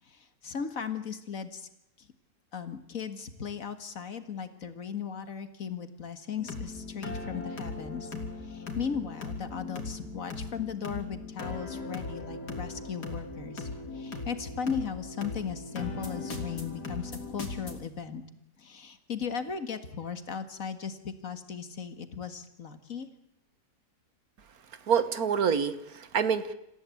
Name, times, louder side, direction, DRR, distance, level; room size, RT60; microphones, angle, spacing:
voice 1, 0.1-1.7 2.5-8.1 8.4-13.7 13.9-18.2 18.6-23.1, left 7 dB, 55° left, 10 dB, 2.1 m, -37 dB
sound 1, 6.4-17.8, left 3 dB, 80° left, 3.9 m, -39 dB
voice 2, 24.9-26.5, right 7 dB, 65° right, 13 dB, 1.7 m, -27 dB
27.5 x 15.0 x 8.5 m, 0.85 s
omnidirectional pair, 1.7 m